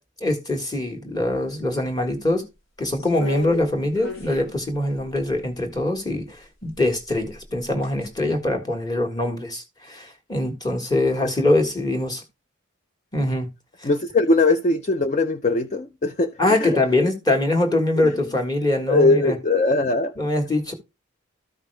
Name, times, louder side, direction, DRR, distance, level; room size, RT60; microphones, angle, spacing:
voice 1, 0.2-2.5 2.8-12.2 13.1-13.5 13.8-13.9 16.4-19.4 20.2-20.7, left 1 dB, 20° left, 1.5 m, -23 dB
sound 1, 3.0-5.7 6.6-8.1 8.4-8.5, left 4 dB, 80° left, 2.7 m, -36 dB
voice 2, 13.8-17.1 18.0-18.3 18.9-20.2, left 3 dB, 35° left, 0.5 m, -21 dB
13.5 x 5.5 x 3.3 m
head